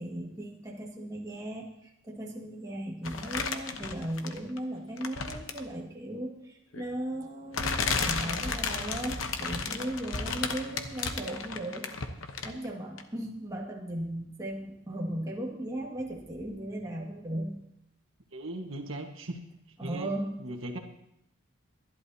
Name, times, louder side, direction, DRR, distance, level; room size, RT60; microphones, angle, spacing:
voice 1, 0.0-11.9 12.4-17.6 19.8-20.4, right 1 dB, 15° right, -3 dB, 1.9 m, -37 dB
sound 1, 3.0-4.6 5.0-5.7 6.7-6.8 7.5-12.7 13.0-13.1, left 5 dB, 75° left, 1.0 m, -33 dB
voice 2, 18.3-19.4 19.8-20.1 20.4-20.8, right 1 dB, 70° right, 3 dB, 1.5 m, -38 dB
23.0 x 11.5 x 2.8 m, 0.79 s
head